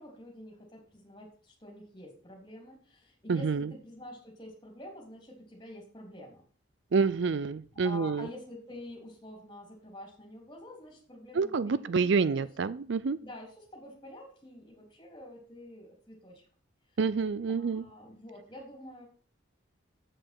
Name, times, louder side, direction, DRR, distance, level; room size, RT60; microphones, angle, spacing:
voice 1, 0.0-6.4 7.7-12.7 13.2-16.4 17.5-19.1, left 1 dB, 20° left, 0 dB, 3.2 m, -47 dB
voice 2, 3.3-3.7 6.9-8.3 11.3-13.2 17.0-17.8, right 5 dB, 60° right, 16 dB, 0.4 m, -28 dB
7.7 x 6.6 x 6.0 m, 0.42 s
head